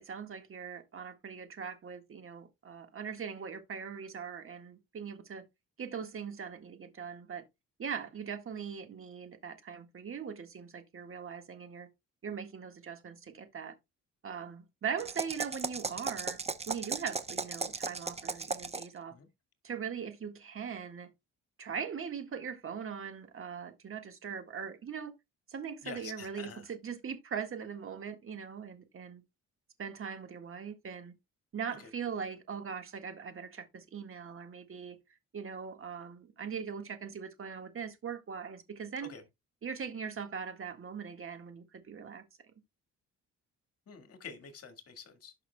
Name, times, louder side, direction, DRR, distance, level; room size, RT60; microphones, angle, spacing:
voice 1, 0.0-5.4 5.8-7.4 7.8-11.9 12.2-13.7 14.2-19.1 19.6-21.1 21.6-25.1 25.5-29.2 29.8-31.1 31.5-35.0 35.3-39.1 39.6-42.2, right 7 dB, 45° right, 1.7 m, -41 dB
sound 1, 15.0-19.0, right 4 dB, 20° right, 0.7 m, -36 dB
voice 2, 25.8-26.7 31.8-31.9 39.0-39.2 43.9-45.3, left 6 dB, 50° left, 1.9 m, -47 dB
11.5 x 5.7 x 2.3 m
cardioid pair, 90°, 30 cm